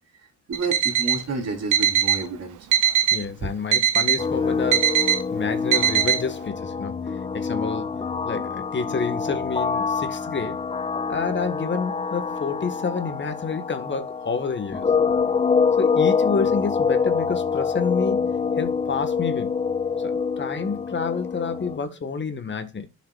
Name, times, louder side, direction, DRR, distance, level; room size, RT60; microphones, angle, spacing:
voice 1, 0.2-2.7 3.4-3.5, right 3 dB, 55° right, 3.8 m, -30 dB
Alarm, 0.5-1.2 1.7-2.2 2.7-3.2 3.7-4.2 4.7-5.2 5.7-6.2, right 9 dB, 80° right, 1.2 m, -20 dB
voice 2, 3.1-7.9 8.2-10.6 11.1-14.9 15.8-19.5 20.0-22.9, left 5 dB, 40° left, 1.6 m, -29 dB
sound 1, 4.2-21.8, left 5 dB, 20° left, 0.7 m, -25 dB
11.0 x 6.8 x 2.4 m
cardioid pair, 90°, 30 cm